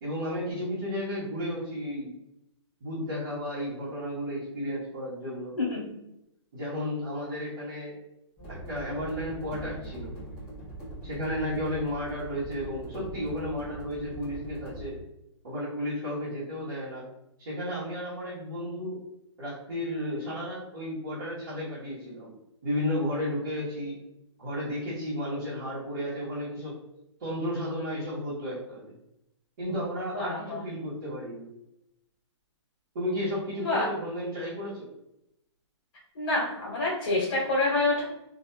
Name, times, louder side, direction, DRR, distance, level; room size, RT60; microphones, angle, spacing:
voice 1, 0.0-2.1 2.8-5.6 6.5-8.0 8.5-10.1 11.0-15.0 15.4-17.1 17.4-19.0 19.4-22.3 22.6-24.0 24.4-26.8 27.2-28.9 29.6-31.5 32.9-34.9, equal, 40° right, -13 dB, 1.1 m, -33 dB
voice 2, 5.6-6.0 30.1-30.6 33.6-33.9 36.1-38.0, left 2 dB, 50° left, -7 dB, 1.3 m, -27 dB
sound 1, 8.4-14.9, right 1 dB, 5° right, 0.7 m, -41 dB
2.7 x 2.5 x 2.2 m, 0.84 s
hypercardioid pair, 175°, 16 cm